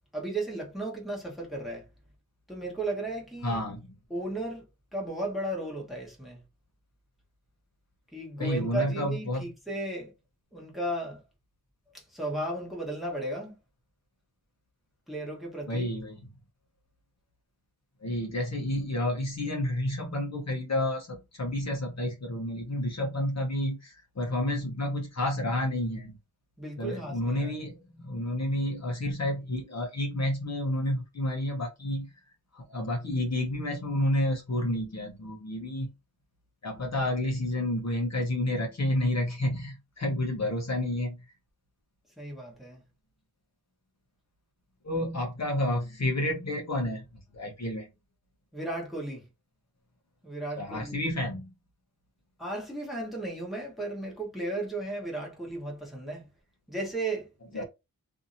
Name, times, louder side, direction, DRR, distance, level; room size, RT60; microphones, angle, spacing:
voice 1, 0.1-1.9 2.5-3.6 4.1-4.7 4.9-6.4 8.1-10.1 10.5-11.2 11.9-13.6 15.1-15.9 26.6-27.6 42.2-42.8 48.5-49.3 50.2-51.0 52.4-56.3 56.7-57.6, right 2 dB, ahead, 1.2 m, -35 dB
voice 2, 3.4-4.0 8.4-9.4 15.7-16.2 18.0-26.1 26.8-32.1 32.5-35.9 36.6-41.2 44.8-47.0 47.3-47.9 50.5-51.5 57.5-57.6, left 1 dB, 45° left, 0.8 m, -30 dB
2.7 x 2.7 x 2.6 m
wide cardioid pair, 110°, 37 cm